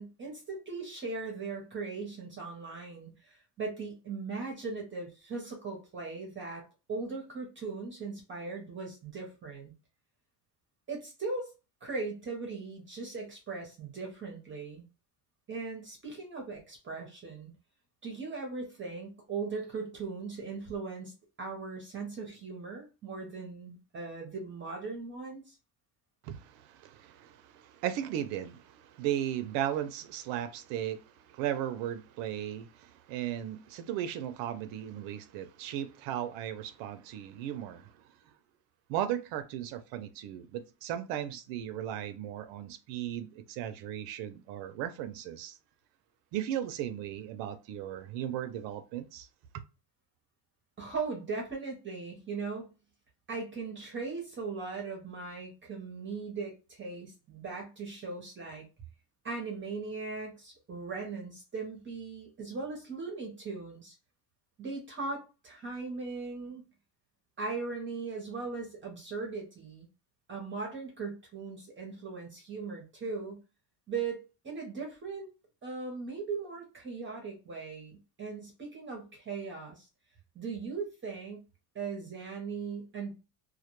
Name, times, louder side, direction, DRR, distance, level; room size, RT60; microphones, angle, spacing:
voice 1, 0.0-9.7 10.9-11.5 11.8-14.9 15.5-17.5 18.0-21.1 21.4-25.6 50.8-52.7 53.3-58.7 59.2-63.9 64.6-66.6 67.4-69.9 70.3-73.4 73.9-75.3 75.6-79.9 80.3-81.4 81.7-83.1, right 4 dB, 25° right, 0.6 m, -39 dB
voice 2, 26.2-37.9 38.9-45.6 46.3-49.3, right 11 dB, 85° right, 0.5 m, -36 dB
2.2 x 2.1 x 2.9 m
cardioid pair, 135°, 43 cm